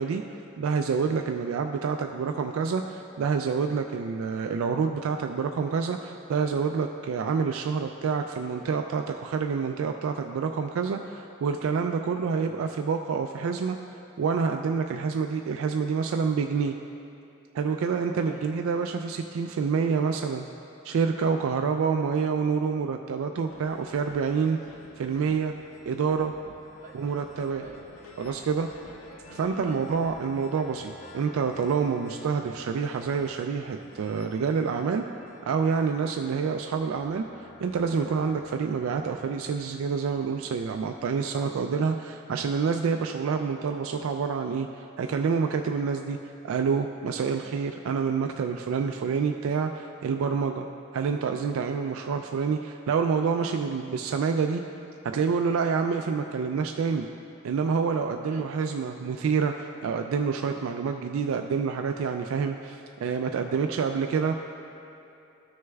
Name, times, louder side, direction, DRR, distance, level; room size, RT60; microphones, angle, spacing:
voice 1, 0.0-13.8 14.2-16.8 17.5-20.5 20.8-24.6 25.0-25.5 25.9-26.3 26.9-27.7 28.2-28.7 29.3-35.0 35.5-46.2 46.4-50.7 50.9-54.6 55.0-57.1 57.4-64.3, right 5 dB, 75° right, 5 dB, 0.3 m, -27 dB
sound 1, 23.5-41.3, left 2 dB, 80° left, 0.7 m, -51 dB
voice 2, 29.6-29.9 58.2-58.5 63.5-64.4, right 1 dB, 35° right, -4 dB, 1.1 m, -45 dB
13.5 x 6.3 x 2.3 m, 2.7 s
head